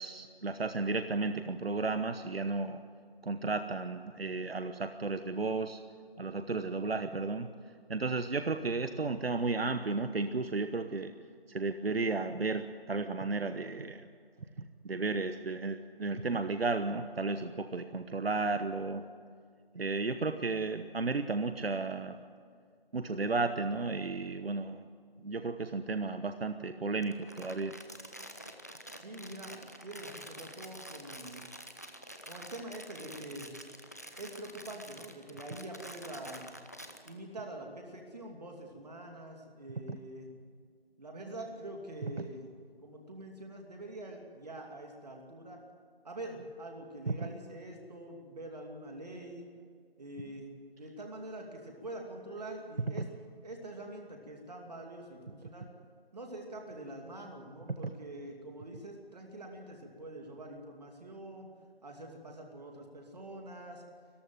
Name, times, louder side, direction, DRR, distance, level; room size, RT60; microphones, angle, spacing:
voice 1, 0.0-2.8 3.2-5.8 6.2-7.5 7.9-11.1 11.5-14.1 14.6-19.0 19.7-22.2 22.9-24.8 25.2-27.7 39.9-40.0 42.2-42.3 47.1-47.2 53.0-53.1 57.8-57.9, right 3 dB, 75° right, 9 dB, 1.2 m, -33 dB
Crumpling crinkling, 27.0-37.1, equal, 15° left, 0.7 m, -48 dB
voice 2, 29.0-31.4 32.3-33.5 34.2-36.5 37.0-40.3 41.0-42.5 42.8-45.6 46.0-49.4 50.0-50.5 50.8-53.0 53.4-55.7 56.1-61.5 61.8-63.8, right 1 dB, 40° right, 1 dB, 2.7 m, -45 dB
23.5 x 14.5 x 9.2 m, 2.1 s
figure-of-eight pair, 165°, 30 cm